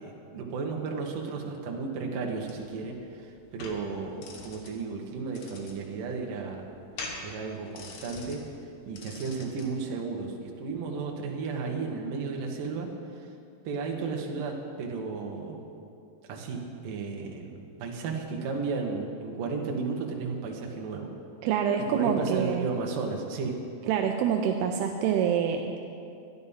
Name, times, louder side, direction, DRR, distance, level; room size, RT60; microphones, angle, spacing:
voice 1, 0.0-6.7 7.2-8.4 8.9-12.9 13.6-15.6 16.3-21.1 21.9-23.5, right 4 dB, 65° right, 1 dB, 2.3 m, -34 dB
sound 1, 2.2-9.7, left 3 dB, 70° left, 1.8 m, -45 dB
voice 2, 21.4-22.7 23.9-25.8, right 8 dB, 85° right, 3 dB, 2.3 m, -26 dB
12.5 x 11.5 x 5.5 m, 2.6 s
omnidirectional pair, 5.2 m